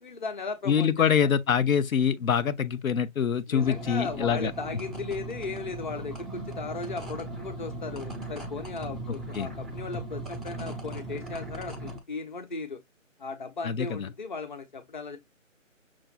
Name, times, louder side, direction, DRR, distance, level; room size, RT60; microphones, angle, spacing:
voice 1, 0.0-1.1 3.5-12.8 13.2-15.2, left 4 dB, 35° left, 0.7 m, -36 dB
voice 2, 0.7-4.5 9.1-9.5 13.6-14.1, left 7 dB, 90° left, 0.6 m, -25 dB
sound 1, 3.5-12.0, right 1 dB, ahead, 0.4 m, -38 dB
6.0 x 2.5 x 2.4 m
figure-of-eight pair, 160°, 40 cm